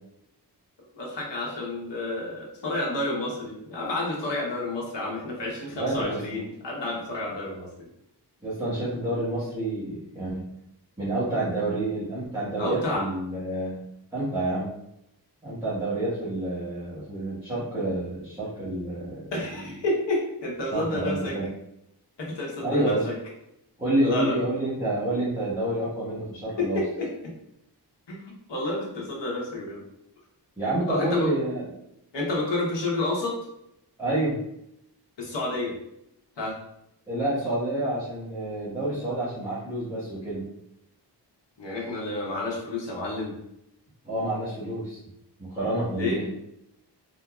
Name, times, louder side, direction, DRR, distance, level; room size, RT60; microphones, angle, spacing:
voice 1, 0.9-7.7 12.6-13.1 19.3-21.4 22.2-23.1 24.0-24.5 26.6-27.3 28.1-29.8 30.9-31.3 32.1-33.4 35.2-35.7 36.4-36.6 41.6-43.3 45.9-46.2, left 2 dB, 85° left, -3 dB, 1.1 m, -30 dB
voice 2, 5.7-6.2 8.4-10.4 11.0-13.9 14.1-14.7 15.4-19.3 20.7-21.5 22.6-23.1 23.8-26.8 30.6-31.6 34.0-34.4 37.1-40.4 44.0-45.0 45.4-46.2, right 1 dB, 10° right, -12 dB, 1.3 m, -28 dB
3.9 x 2.7 x 2.4 m, 0.81 s
wide cardioid pair, 115°, 42 cm